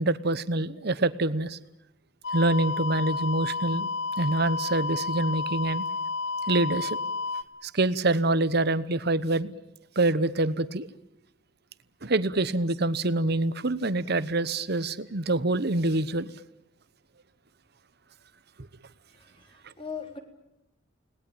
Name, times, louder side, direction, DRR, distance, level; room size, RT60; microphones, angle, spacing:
voice 1, 0.0-1.6 2.3-3.9 4.2-5.8 6.5-7.0 7.6-9.5 10.0-10.9 12.0-16.3, right 2 dB, 50° right, 15 dB, 1.0 m, -26 dB
sound 1, 2.2-7.4, left 4 dB, 60° left, 1.3 m, -31 dB
voice 2, 19.2-20.2, left 6 dB, 25° left, 4 dB, 3.8 m, -40 dB
29.5 x 20.0 x 8.8 m, 0.85 s
head